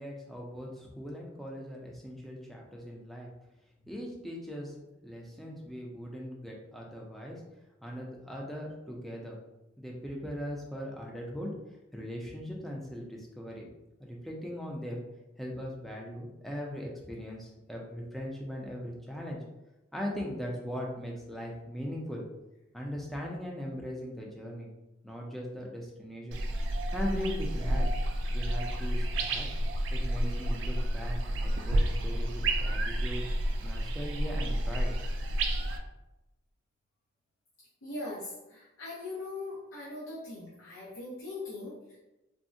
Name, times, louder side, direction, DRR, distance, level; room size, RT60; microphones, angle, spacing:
voice 1, 0.0-3.3 3.9-4.7 5.0-7.4 7.8-9.4 9.8-11.5 11.9-13.7 14.0-15.0 15.4-19.4 19.9-22.2 22.7-24.7 25.0-26.4 26.9-27.9 28.3-29.5 29.9-33.2 33.6-34.9, equal, ahead, -2 dB, 0.4 m, -39 dB
sound 1, 26.3-35.8, right 1 dB, 70° right, 0.4 m, -30 dB
voice 2, 37.8-42.0, left 2 dB, 85° left, -5 dB, 0.6 m, -40 dB
3.5 x 2.1 x 2.6 m, 0.98 s
head